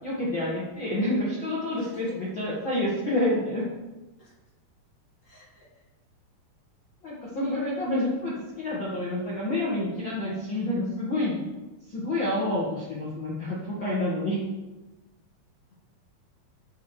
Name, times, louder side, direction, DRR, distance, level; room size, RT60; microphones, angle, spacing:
voice 1, 0.0-3.7 7.0-11.4 11.9-14.4, left 1 dB, 50° left, -6 dB, 1.4 m, -28 dB
voice 2, 1.7-2.1 4.2-4.3 5.2-5.6, left 2 dB, 35° left, -4 dB, 1.2 m, -52 dB
7.7 x 6.3 x 6.3 m, 1.1 s
omnidirectional pair, 4.9 m